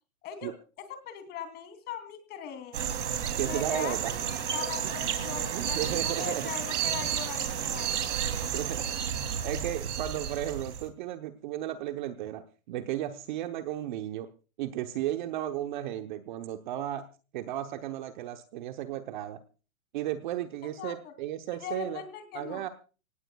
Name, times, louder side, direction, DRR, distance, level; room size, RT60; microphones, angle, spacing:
voice 1, 0.2-2.9 3.5-4.3 4.5-8.0 20.8-21.1 21.6-22.6, left 8 dB, 25° left, 9 dB, 3.0 m, -40 dB
sound 1, 2.7-10.9, right 8 dB, 55° right, 2.9 m, -32 dB
voice 2, 3.4-4.2 4.8-5.1 5.5-6.5 8.5-14.3 14.6-17.1 17.3-19.4 19.9-22.0 22.3-22.7, right 12 dB, 35° right, 8 dB, 0.9 m, -34 dB
26.0 x 18.0 x 2.3 m, 0.36 s
hypercardioid pair, 145°, 42 cm